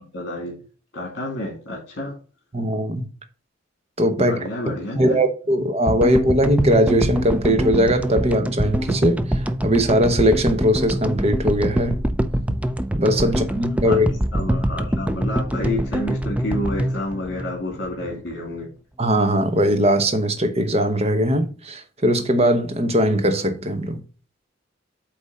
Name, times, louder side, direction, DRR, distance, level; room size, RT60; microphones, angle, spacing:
voice 1, 0.1-0.6 0.9-2.2 4.2-5.2 13.8-14.0 14.3-18.7, left 1 dB, 60° left, 2.3 m, -29 dB
voice 2, 2.5-3.1 4.0-4.4 4.9-12.0 12.9-14.1 19.0-24.0, equal, 35° right, 1.1 m, -20 dB
sound 1, 5.9-18.2, equal, 5° right, 0.5 m, -24 dB
8.3 x 3.1 x 5.4 m
head